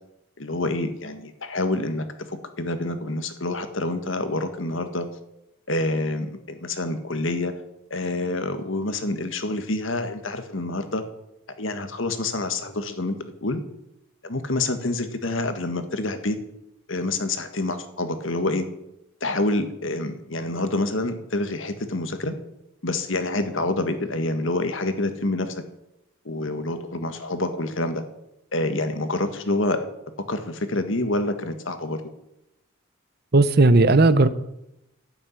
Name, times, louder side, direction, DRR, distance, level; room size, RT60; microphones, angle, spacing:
voice 1, 0.4-5.1 5.7-7.5 7.9-11.0 11.6-13.6 14.2-16.4 16.9-18.7 19.2-22.3 22.8-25.6 26.3-28.0 28.5-29.9 30.3-32.0, left 2 dB, 65° left, 9 dB, 1.8 m, -27 dB
voice 2, 33.3-34.3, right 2 dB, 50° right, 14 dB, 0.9 m, -15 dB
12.0 x 8.9 x 9.8 m, 0.85 s
head